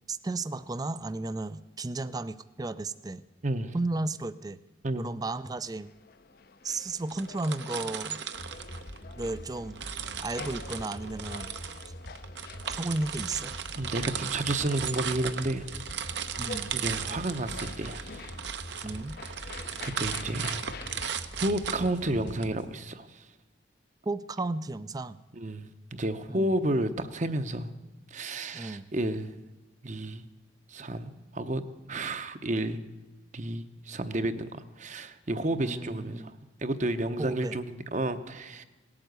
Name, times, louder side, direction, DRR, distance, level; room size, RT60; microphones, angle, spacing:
voice 1, 0.1-3.2 3.7-4.6 4.9-5.9 6.6-8.2 9.2-9.8 10.2-11.5 12.6-13.6 16.4-16.7 18.8-19.2 24.1-25.2 26.3-26.6 28.5-28.9 35.6-36.3 37.2-37.6, right 2 dB, 20° right, 15 dB, 0.4 m, -34 dB
voice 2, 3.4-3.8 4.8-5.1 13.8-15.7 16.7-18.3 19.2-20.6 21.4-23.3 25.3-27.7 28.1-29.3 29.8-30.2 30.7-32.8 33.3-36.3 36.6-38.6, right 1 dB, 40° right, 11 dB, 0.8 m, -31 dB
sound 1, 5.5-21.1, left 4 dB, 55° left, 0.6 m, -48 dB
sound 2, 7.1-9.3 9.8-22.4, right 8 dB, 65° right, 0.9 m, -37 dB
sound 3, 8.3-22.7, equal, 80° left, 2.4 m, -45 dB
18.0 x 8.8 x 8.1 m, 1.1 s
head